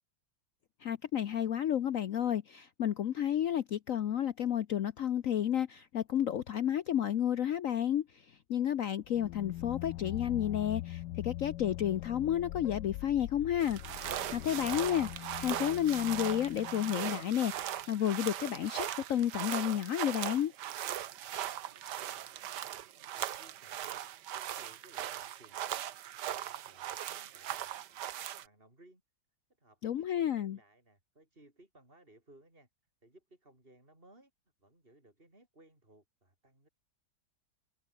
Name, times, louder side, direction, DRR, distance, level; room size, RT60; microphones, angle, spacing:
voice 1, 0.8-13.8 14.3-20.5 29.8-30.6, left 10 dB, 60° left, 1.0 m, -31 dB
sound 1, 9.0-17.6, left 15 dB, 90° left, 1.3 m, -43 dB
sound 2, 13.6-28.5, right 11 dB, 75° right, 1.5 m, -39 dB
voice 2, 21.4-25.9 26.2-29.0 29.6-32.7 33.0-34.3 34.6-36.7, right 1 dB, 30° right, 6.8 m, -62 dB
omnidirectional pair, 1.9 m